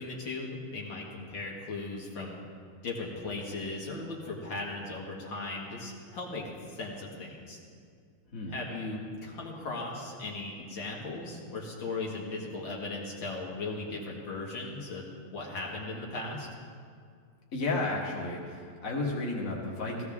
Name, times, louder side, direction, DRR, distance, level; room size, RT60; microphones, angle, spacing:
voice 1, 0.0-2.4 2.8-7.6 8.5-15.1 15.3-16.5, left 3 dB, 75° left, -3 dB, 2.6 m, -37 dB
voice 2, 17.5-20.1, left 2 dB, 45° left, -3 dB, 2.2 m, -32 dB
17.0 x 15.0 x 3.6 m, 2.1 s
omnidirectional pair, 2.1 m